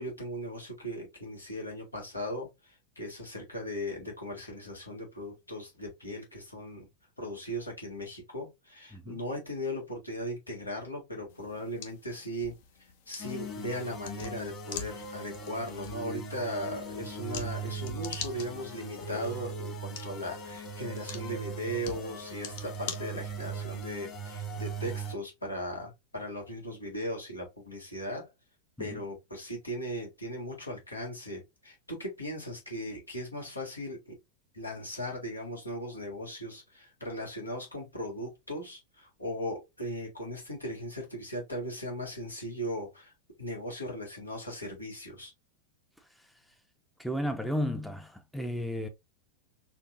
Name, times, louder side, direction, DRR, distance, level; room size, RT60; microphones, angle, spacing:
voice 1, 0.0-6.9 7.2-12.5 13.1-28.3 28.8-34.2 34.5-43.1 43.4-45.3, equal, 80° left, 1.8 m, -38 dB
sound 1, 11.3-23.6, left 7 dB, 50° left, 0.8 m, -45 dB
sound 2, 13.2-25.1, right 3 dB, 30° left, 1.9 m, -39 dB
voice 2, 47.0-48.9, equal, ahead, 0.6 m, -33 dB
4.3 x 2.6 x 2.6 m
figure-of-eight pair, 90°, 0 cm